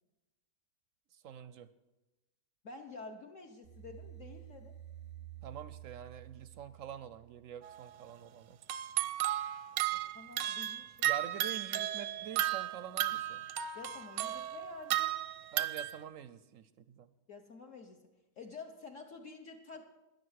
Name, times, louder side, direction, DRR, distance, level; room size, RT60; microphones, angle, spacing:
voice 1, 1.1-1.7 5.4-8.6 11.0-13.4 15.5-17.1, right 9 dB, 65° right, 14 dB, 0.8 m, -46 dB
voice 2, 2.6-4.7 9.9-11.1 13.7-15.1 17.3-18.0 18.4-19.9, left 4 dB, 50° left, 2 dB, 1.3 m, -49 dB
sound 1, 3.6-7.7, right 13 dB, 85° left, 3.4 m, -51 dB
sound 2, 7.6-7.8 8.6-16.0, right 13 dB, 90° right, 1.3 m, -34 dB
13.5 x 10.5 x 6.4 m, 1.0 s
omnidirectional pair, 1.8 m